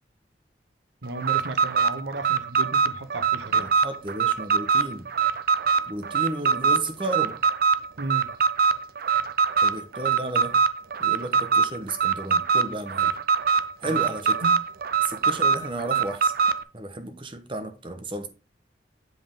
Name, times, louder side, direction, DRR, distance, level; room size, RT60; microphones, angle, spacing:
voice 1, 1.0-3.7 8.0-8.3 13.9-14.0 14.4-14.6, right 2 dB, 85° right, 1.0 m, -34 dB
Alarm, 1.2-16.6, right 6 dB, 55° right, 0.5 m, -23 dB
voice 2, 3.6-5.1 5.9-7.4 9.6-10.6 11.0-13.1 13.8-14.4 15.0-16.3 16.7-18.3, right 2 dB, 30° right, 1.0 m, -33 dB
7.8 x 5.4 x 3.7 m
head